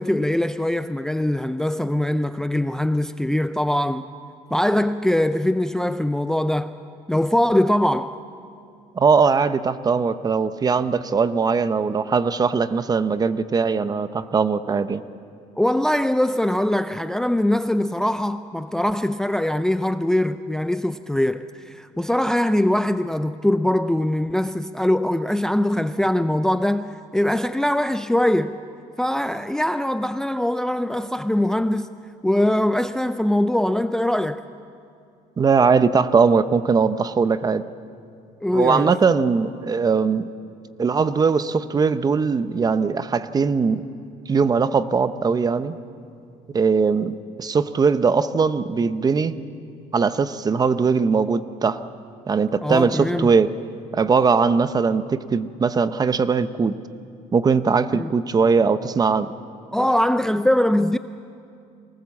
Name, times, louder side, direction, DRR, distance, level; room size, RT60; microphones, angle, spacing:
voice 1, 0.0-4.1 4.5-6.7 7.1-8.2 15.6-28.6 29.0-34.4 38.4-38.9 52.6-53.3 57.9-58.1 59.7-61.0, left 1 dB, 5° left, 0.5 m, -22 dB
voice 2, 8.9-15.0 35.4-37.6 38.5-40.3 40.8-43.8 44.3-45.8 46.5-49.4 49.9-51.8 52.3-53.5 53.9-56.8 57.3-59.3, right 5 dB, 30° right, 0.8 m, -20 dB
24.0 x 19.5 x 7.3 m
cardioid pair, 105°, 14 cm